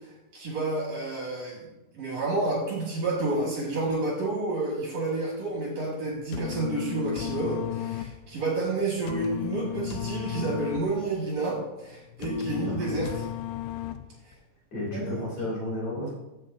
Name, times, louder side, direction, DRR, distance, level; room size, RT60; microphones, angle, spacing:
voice 1, 0.0-1.7 1.9-13.2 14.9-15.2, right 2 dB, 50° right, -4 dB, 2.6 m, -30 dB
sound 1, 6.1-14.3, left 14 dB, 90° left, 2.4 m, -35 dB
voice 2, 12.6-13.0 14.7-16.1, left 1 dB, 55° left, -4 dB, 4.0 m, -33 dB
14.5 x 6.5 x 2.6 m, 1.0 s
omnidirectional pair, 4.1 m